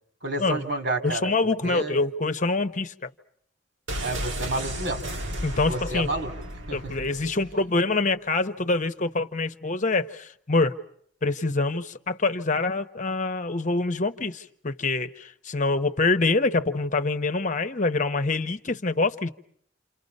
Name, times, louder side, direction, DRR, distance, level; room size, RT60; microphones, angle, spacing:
voice 1, 0.2-1.3 1.6-2.0 4.0-5.0 5.7-6.3 6.7-6.9, right 2 dB, 70° right, 3.1 m, -30 dB
voice 2, 1.0-3.1 5.4-6.1 6.7-10.8 11.2-19.3, left 3 dB, 45° left, 1.0 m, -25 dB
sound 1, 3.9-7.7 7.9-8.0, equal, 85° right, 1.9 m, -34 dB
28.5 x 28.0 x 5.4 m
head